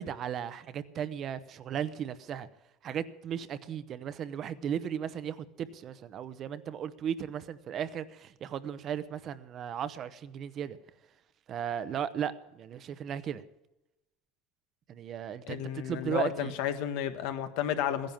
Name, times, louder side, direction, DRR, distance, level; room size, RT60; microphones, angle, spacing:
voice 1, 0.0-2.5 2.8-10.8 11.5-13.4 14.9-16.5, right 9 dB, 40° right, 14 dB, 0.8 m, -36 dB
voice 2, 15.5-18.1, left 10 dB, 75° left, 9 dB, 1.5 m, -32 dB
15.5 x 10.5 x 7.2 m, 0.92 s
cardioid pair, 145°, 0 cm